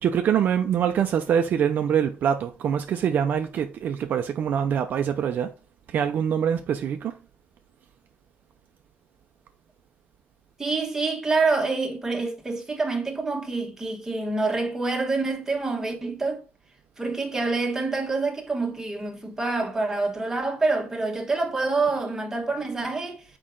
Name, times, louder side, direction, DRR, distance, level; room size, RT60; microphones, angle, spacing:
voice 1, 0.0-5.5 5.9-7.1, right 8 dB, 55° right, 0.6 m, -24 dB
voice 2, 10.6-16.4 17.0-23.2, right 3 dB, 10° right, 1.3 m, -26 dB
6.4 x 4.8 x 3.8 m
cardioid pair, 150°, 4 cm